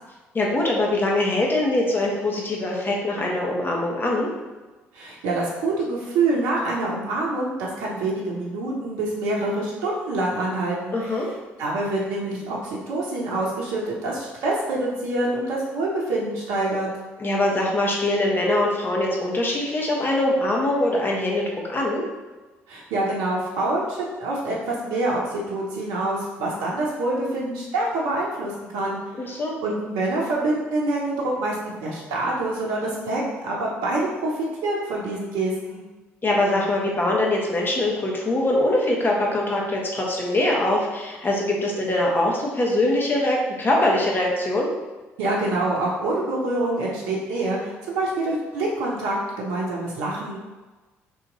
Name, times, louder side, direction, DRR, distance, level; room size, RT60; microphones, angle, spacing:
voice 1, 0.3-4.3 10.9-11.3 17.2-21.4 21.7-22.0 29.2-29.5 36.2-44.7, left 1 dB, 30° left, -2 dB, 1.2 m, -23 dB
voice 2, 4.9-11.1 11.6-16.9 22.7-29.0 29.6-35.8 45.2-50.4, right 2 dB, 75° right, -4 dB, 0.8 m, -26 dB
4.1 x 2.9 x 3.9 m, 1.2 s
hypercardioid pair, 50°, 7 cm